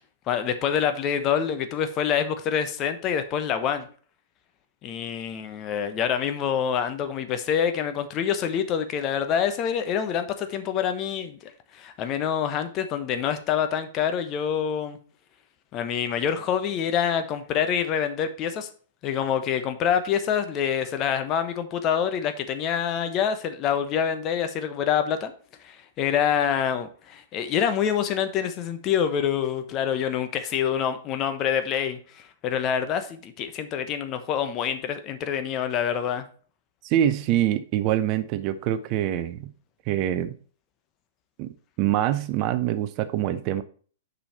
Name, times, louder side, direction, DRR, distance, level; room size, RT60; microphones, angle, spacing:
voice 1, 0.3-3.9 4.8-15.0 15.7-18.7 19.0-25.3 25.6-36.2, left 8 dB, 30° left, 1.1 m, -26 dB
voice 2, 36.8-39.5 39.9-40.3 41.4-43.6, right 12 dB, 40° right, 0.6 m, -25 dB
7.0 x 5.6 x 4.4 m
figure-of-eight pair, 105°, 0 cm